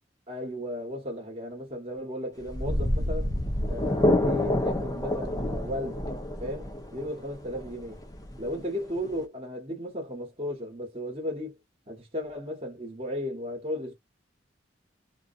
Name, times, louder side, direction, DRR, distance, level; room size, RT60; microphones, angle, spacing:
voice 1, 0.3-3.3 3.7-8.0 8.4-11.6 11.9-13.9, left 1 dB, 30° right, 1.1 m, -35 dB
sound 1, 2.4-9.2, left 1 dB, 20° left, 0.5 m, -28 dB
2.4 x 2.2 x 2.4 m
head